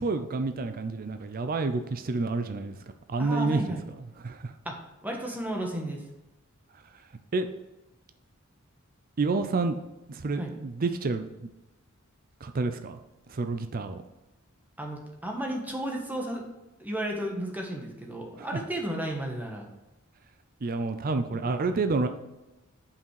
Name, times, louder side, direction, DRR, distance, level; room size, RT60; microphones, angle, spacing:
voice 1, 0.0-2.8 3.1-3.6 4.2-4.5 7.3-7.5 9.2-9.8 10.1-11.5 12.4-13.0 13.3-14.0 18.4-18.5 20.6-22.1, right 3 dB, 45° right, 8 dB, 0.5 m, -29 dB
voice 2, 3.2-3.8 4.6-6.0 10.4-10.5 14.8-16.4 16.8-19.7 21.7-21.8, right 1 dB, 10° right, 1 dB, 1.4 m, -33 dB
7.4 x 5.8 x 4.7 m, 1.0 s
head